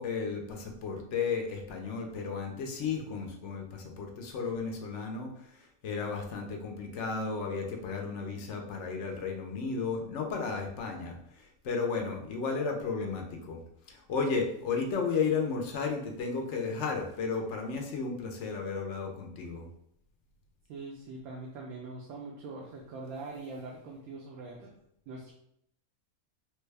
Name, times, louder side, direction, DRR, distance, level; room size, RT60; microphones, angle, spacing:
voice 1, 0.0-5.6 5.8-13.6 13.9-19.7, left 5 dB, 65° left, 3 dB, 0.8 m, -33 dB
voice 2, 20.7-24.7 25.1-25.3, right 3 dB, 80° right, -2 dB, 1.0 m, -42 dB
3.3 x 2.2 x 3.2 m, 0.72 s
omnidirectional pair, 1.5 m